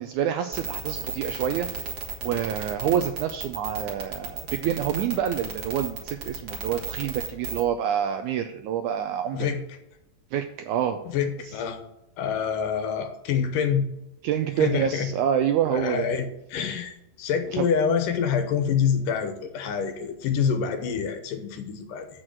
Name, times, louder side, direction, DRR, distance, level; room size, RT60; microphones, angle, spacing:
voice 1, 0.0-1.7 2.2-9.5 10.3-11.0 11.4-11.6 14.2-16.1 17.5-17.7, right 9 dB, 80° right, 7 dB, 1.7 m, -27 dB
sound 1, 0.5-7.6, right 5 dB, 40° right, 1.5 m, -33 dB
voice 2, 11.1-11.8 12.2-13.9 14.6-15.1 15.7-16.3 16.5-22.1, left 7 dB, 75° left, 7 dB, 2.5 m, -26 dB
7.9 x 6.3 x 7.4 m, 0.85 s
omnidirectional pair, 4.0 m